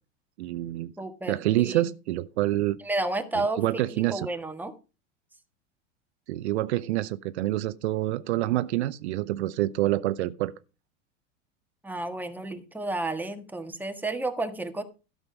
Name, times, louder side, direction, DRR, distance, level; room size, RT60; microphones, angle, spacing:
voice 1, 0.4-0.9 1.3-2.8 3.6-4.3 6.3-10.5, right 15 dB, 60° right, 0.7 m, -27 dB
voice 2, 1.0-1.9 2.8-4.7 11.8-14.8, right 2 dB, 5° right, 1.5 m, -32 dB
12.5 x 6.7 x 5.2 m
hypercardioid pair, 90°, 37 cm